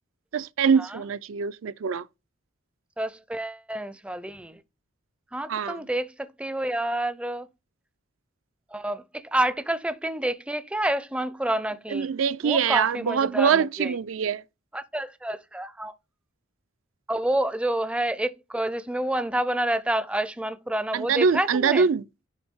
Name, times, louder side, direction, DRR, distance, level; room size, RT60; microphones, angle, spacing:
voice 1, 0.3-2.0 5.5-5.8 11.9-14.4 20.9-22.0, right 6 dB, 70° right, 0.4 m, -24 dB
voice 2, 3.0-4.6 5.3-7.5 8.7-9.0 9.3-12.1 12.4-13.9 14.7-15.9 17.1-21.8, right 1 dB, 5° right, 0.4 m, -28 dB
10.0 x 3.4 x 3.6 m
head